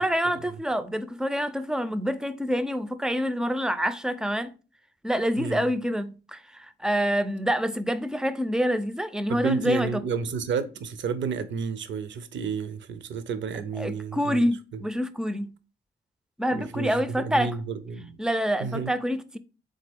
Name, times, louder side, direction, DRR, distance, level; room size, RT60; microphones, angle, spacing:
voice 1, 0.0-4.5 5.0-10.0 13.8-15.5 16.4-17.5 18.2-19.4, equal, 5° right, 0.3 m, -27 dB
voice 2, 9.3-14.4 14.7-14.8 16.5-18.2 18.6-18.9, right 6 dB, 65° right, 0.5 m, -31 dB
3.8 x 3.3 x 3.4 m
cardioid pair, 95°, 21 cm